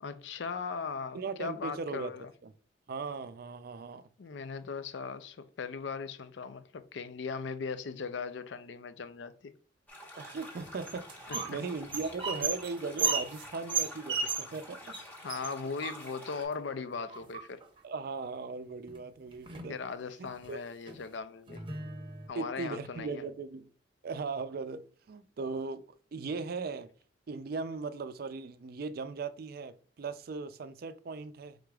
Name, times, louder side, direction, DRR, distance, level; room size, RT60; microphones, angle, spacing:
voice 1, 0.0-2.3 4.2-9.5 11.3-11.6 15.2-17.6 19.7-21.6 22.3-23.2, left 5 dB, 70° left, 0.4 m, -39 dB
voice 2, 1.1-2.1 2.9-4.1 10.2-15.0 17.8-19.8 20.2-20.6 22.4-23.7 24.0-25.8 26.1-26.9 27.3-31.6, right 4 dB, 55° right, 0.4 m, -38 dB
sound 1, 9.9-16.4, left 1 dB, 10° left, 1.1 m, -49 dB
sound 2, 10.4-11.6 11.8-14.6 14.9-15.0 15.3-16.4 17.1-17.8 18.9-19.0 19.3-19.8 20.3-20.5 20.9-21.0 21.5-22.3, right 5 dB, 25° right, 0.8 m, -35 dB
4.8 x 3.8 x 2.3 m
head